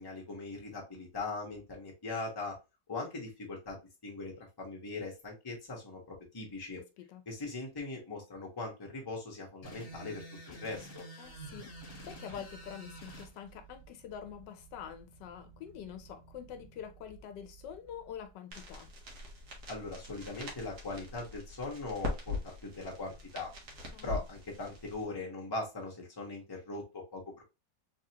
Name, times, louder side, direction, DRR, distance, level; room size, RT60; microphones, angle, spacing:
voice 1, 0.0-2.6 2.9-6.8 7.3-11.0 19.7-23.5 24.0-27.4, left 3 dB, 15° left, 0.9 m, -40 dB
sound 1, 9.6-13.3, right 1 dB, 40° left, 1.3 m, -48 dB
voice 2, 11.2-11.7 12.0-18.9 23.9-24.2, left 9 dB, 80° left, 1.3 m, -46 dB
sound 2, 11.2-18.3, right 7 dB, 5° right, 0.4 m, -57 dB
sound 3, 18.5-25.0, left 3 dB, 65° right, 1.6 m, -42 dB
3.7 x 2.9 x 2.8 m
omnidirectional pair, 1.9 m